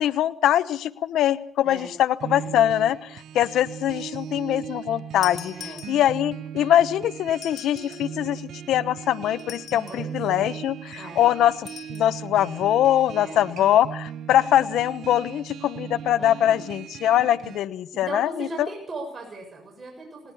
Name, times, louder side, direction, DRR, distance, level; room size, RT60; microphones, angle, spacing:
voice 1, 0.0-5.5 5.9-8.4 8.7-11.5 11.9-18.5, left 11 dB, 80° left, 15 dB, 1.0 m, -22 dB
sound 1, 2.2-17.6, right 9 dB, 70° right, 0.9 m, -38 dB
sound 2, 5.2-6.4 7.3-8.2 9.4-10.2 11.7-12.1, left 9 dB, 65° left, 2.0 m, -41 dB
voice 2, 5.5-5.8 9.8-10.5 10.9-11.2 13.2-13.5 16.2-16.6 17.9-20.3, right 2 dB, 35° right, 1 dB, 7.1 m, -38 dB
19.5 x 18.5 x 7.1 m, 0.63 s
cardioid pair, 90°, 0 cm